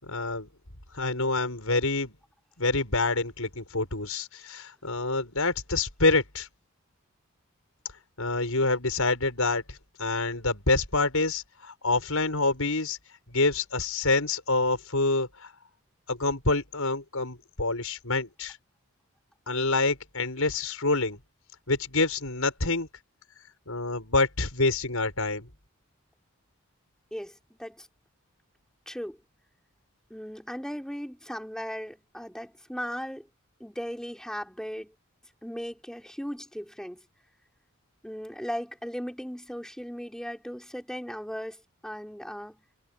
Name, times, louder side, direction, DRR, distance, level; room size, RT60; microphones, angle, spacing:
voice 1, 0.0-0.5 0.9-2.1 2.6-6.5 8.2-13.0 13.3-15.5 16.1-18.6 19.5-21.2 21.7-22.9 23.7-25.5, left 3 dB, 75° left, 6.0 m, -27 dB
voice 2, 27.1-27.9 28.9-29.2 30.1-33.3 33.6-34.9 35.4-37.0 38.0-42.7, equal, 5° left, 4.7 m, -37 dB
head